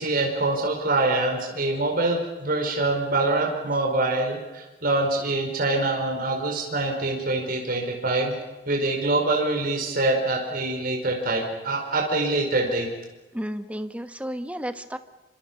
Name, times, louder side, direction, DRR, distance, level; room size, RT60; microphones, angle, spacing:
voice 1, 0.0-8.3 8.7-12.9, right 2 dB, 55° right, 1 dB, 4.9 m, -25 dB
voice 2, 13.3-15.0, equal, 10° right, 8 dB, 1.2 m, -32 dB
27.0 x 25.5 x 5.6 m, 1.2 s
head